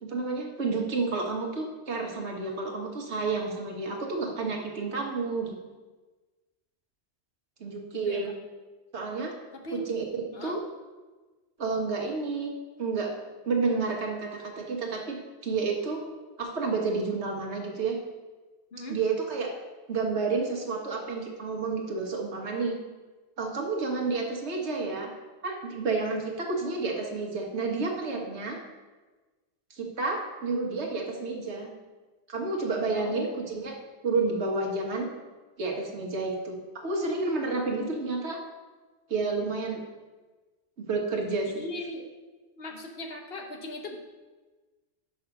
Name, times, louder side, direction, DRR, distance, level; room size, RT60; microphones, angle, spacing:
voice 1, 0.0-5.6 7.6-8.3 8.9-9.3 9.7-10.0 10.4-10.6 11.6-12.5 12.8-13.1 13.4-15.2 15.4-16.0 16.4-18.0 18.9-19.5 19.9-22.7 23.4-25.1 25.4-28.6 29.7-31.7 32.3-33.7 34.0-35.1 35.6-38.4 39.1-39.8 40.8-41.6, right 3 dB, 80° right, 1 dB, 1.6 m, -30 dB
voice 2, 9.5-9.9 10.3-10.6 18.7-19.0 32.9-33.4 41.5-42.0 42.6-44.0, left 1 dB, 65° left, 3 dB, 1.2 m, -38 dB
6.3 x 5.7 x 5.9 m, 1.3 s
omnidirectional pair, 1.1 m